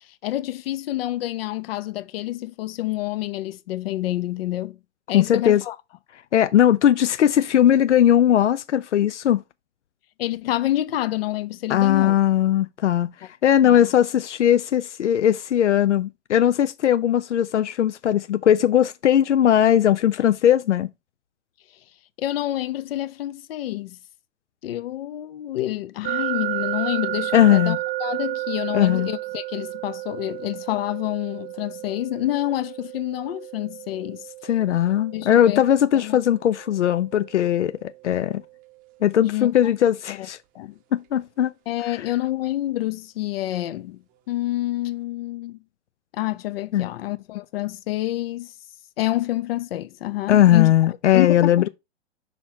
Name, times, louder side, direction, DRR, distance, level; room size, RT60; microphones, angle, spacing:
voice 1, 0.2-4.8 5.1-5.8 10.2-12.1 13.6-13.9 22.2-24.0 24.6-34.3 35.1-35.6 35.9-36.2 39.2-39.5 40.1-40.3 40.5-40.8 41.7-45.6 46.1-48.5 49.0-50.7 51.1-51.7, left 15 dB, 55° left, 0.7 m, -28 dB
voice 2, 5.1-5.6 6.3-9.4 11.7-20.9 27.3-27.8 28.7-29.1 34.4-38.4 39.0-40.4 40.9-41.5 41.9-42.1 46.7-46.9 50.3-51.7, left 10 dB, 90° left, 0.5 m, -19 dB
sound 1, 26.0-38.9, right 18 dB, 25° right, 0.7 m, -33 dB
6.0 x 4.4 x 4.3 m
hypercardioid pair, 120°, 34 cm